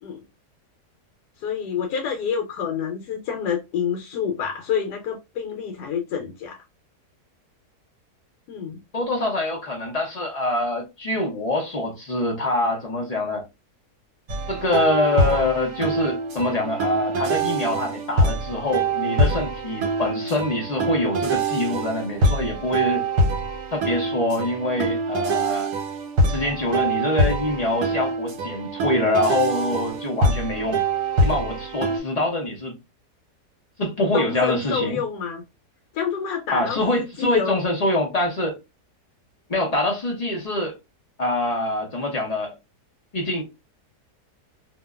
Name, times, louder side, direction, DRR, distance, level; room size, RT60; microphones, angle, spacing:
voice 1, 1.4-6.6 8.5-8.8 34.1-35.4 35.9-37.6, left 7 dB, 85° left, 1.2 m, -28 dB
voice 2, 8.9-13.4 14.5-23.0 23.7-25.7 26.3-30.8 31.2-32.8 33.8-35.0 36.5-38.6 39.5-40.7 41.2-42.5 43.1-43.4, left 2 dB, 45° left, 0.5 m, -25 dB
sound 1, 14.3-32.0, right 2 dB, 75° right, 1.3 m, -24 dB
2.8 x 2.2 x 2.2 m
omnidirectional pair, 1.7 m